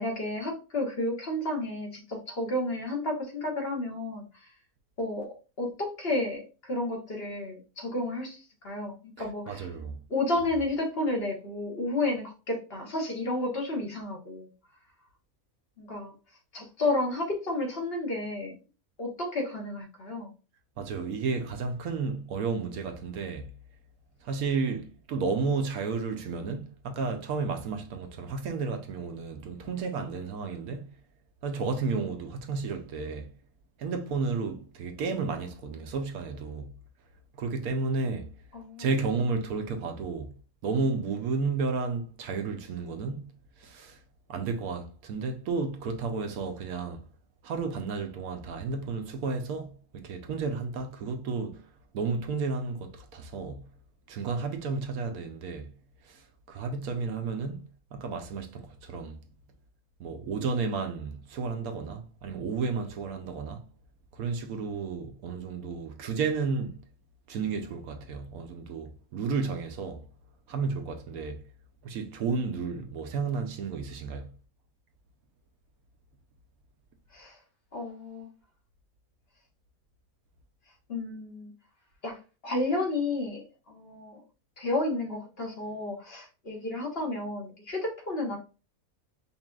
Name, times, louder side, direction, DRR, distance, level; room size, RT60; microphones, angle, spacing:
voice 1, 0.0-4.5 5.0-9.7 10.1-14.5 15.8-16.1 16.5-18.5 19.0-20.3 38.5-38.9 77.1-77.4 77.7-78.3 80.9-81.5 82.0-84.2 84.6-88.4, left 2 dB, 45° left, 1.3 m, -32 dB
voice 2, 9.5-10.0 20.8-23.5 24.2-30.8 31.4-33.3 33.8-36.7 37.4-38.3 38.8-40.3 40.6-43.2 43.6-44.0 44.3-47.0 47.4-51.7 51.9-53.6 54.1-55.7 56.0-57.6 57.9-59.2 60.0-63.6 64.1-66.8 67.3-70.0 70.5-71.4 71.8-74.3, right 4 dB, 80° right, 1.1 m, -32 dB
5.4 x 2.6 x 2.4 m
omnidirectional pair, 1.5 m